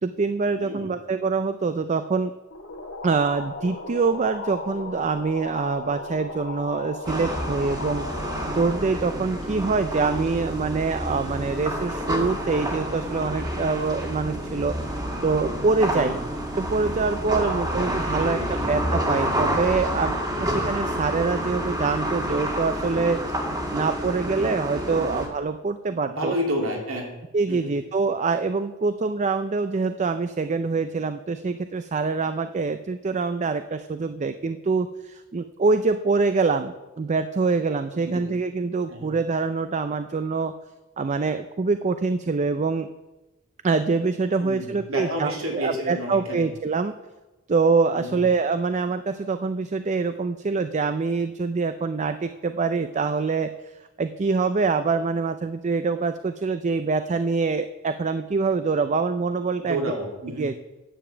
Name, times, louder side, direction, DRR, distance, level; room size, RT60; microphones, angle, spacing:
voice 1, 0.0-2.3 3.0-14.7 15.2-16.2 16.6-18.4 18.7-20.1 20.4-23.2 23.7-26.4 27.3-40.5 41.0-42.9 43.6-46.9 47.5-53.5 54.0-59.9 60.4-60.6, right 4 dB, 35° right, 10 dB, 0.4 m, -25 dB
voice 2, 0.6-0.9 15.9-16.2 17.4-18.7 20.4-20.6 24.9-25.1 26.1-27.1 27.5-27.7 38.0-38.3 38.9-39.1 44.4-46.5 48.0-48.2 59.6-60.5, equal, 80° right, 0 dB, 2.9 m, -31 dB
sound 1, 2.5-9.9, left 2 dB, 75° left, 2.4 m, -37 dB
sound 2, 7.1-25.3, equal, 20° right, 1.9 m, -28 dB
10.0 x 7.0 x 7.7 m, 1.1 s
head